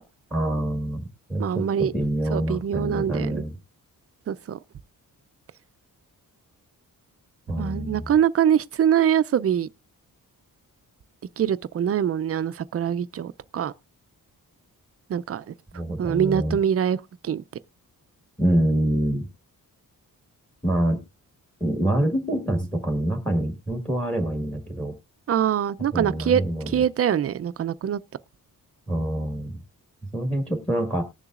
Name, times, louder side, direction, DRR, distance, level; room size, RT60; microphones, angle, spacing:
voice 1, 0.3-1.0 1.3-3.5 7.5-8.0 15.7-16.6 18.4-19.3 20.6-21.0 21.6-24.9 25.9-26.8 28.9-29.6 30.1-31.0, right 1 dB, 5° left, 1.6 m, -26 dB
voice 2, 1.4-1.9 2.3-3.4 4.3-4.6 7.6-9.7 11.4-13.7 15.1-15.5 16.0-17.4 25.3-28.0, right 9 dB, 45° right, 0.5 m, -24 dB
19.5 x 6.9 x 2.4 m
wide cardioid pair, 165°, 35 cm